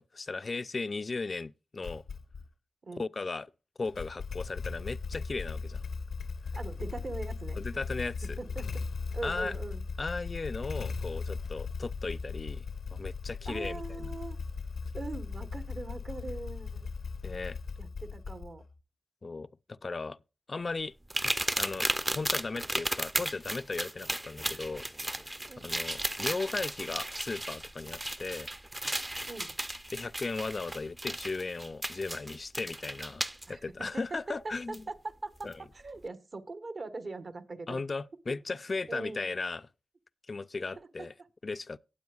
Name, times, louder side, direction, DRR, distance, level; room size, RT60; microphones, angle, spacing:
voice 1, 0.0-2.0 3.0-3.5 3.8-5.8 7.6-8.4 9.2-9.5 10.0-12.6 12.9-14.1 17.2-17.6 19.2-20.2 20.5-20.9 21.2-24.9 25.6-28.5 29.9-34.8 35.4-35.6 37.7-39.7 40.3-41.1 41.4-41.8, left 3 dB, 45° left, 0.4 m, -36 dB
Motorcycle / Engine starting, 1.8-2.5 3.8-18.7, left 5 dB, 80° left, 0.7 m, -38 dB
voice 2, 6.5-7.6 8.4-8.8 9.1-9.8 13.4-14.4 14.9-16.9 17.8-18.6 25.5-25.7 29.2-29.6 33.5-37.8 38.9-39.3 40.8-41.1, right 3 dB, 55° right, 1.3 m, -41 dB
sound 1, 21.1-33.5 34.7-34.8 35.4-35.5, right 1 dB, 20° right, 0.6 m, -35 dB
18.0 x 7.8 x 2.4 m
cardioid pair, 55°, 0 cm